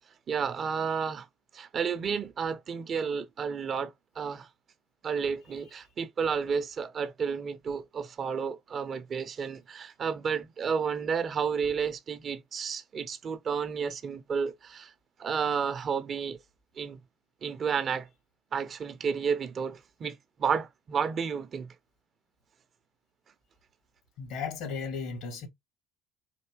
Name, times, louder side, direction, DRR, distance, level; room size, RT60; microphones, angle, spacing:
voice 1, 0.3-1.3 1.5-4.5 5.0-14.9 15.2-16.4 16.8-17.0 17.4-18.1 18.5-21.7, right 6 dB, 40° right, 0.6 m, -31 dB
voice 2, 24.2-25.5, left 5 dB, 65° left, 1.9 m, -35 dB
4.4 x 2.7 x 3.3 m
hypercardioid pair, 70°, 0 cm